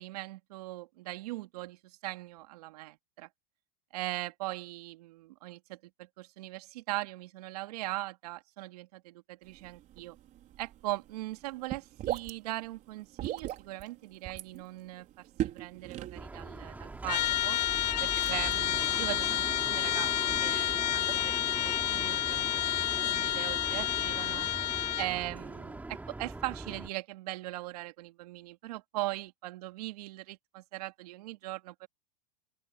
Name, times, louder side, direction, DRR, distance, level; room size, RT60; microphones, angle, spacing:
voice 1, 0.0-2.9 3.2-3.3 3.9-10.2 10.6-17.6 18.0-22.5 23.0-24.5 25.0-31.9, right 18 dB, 70° right, 2.8 m, -40 dB
sound 1, 9.4-21.3, right 13 dB, 40° right, 5.2 m, -42 dB
sound 2, 16.1-26.9, right 2 dB, 10° right, 3.5 m, -41 dB
Trumpet, 17.1-25.1, left 13 dB, 90° left, 0.7 m, -30 dB
open air
supercardioid pair, 120°, 20 cm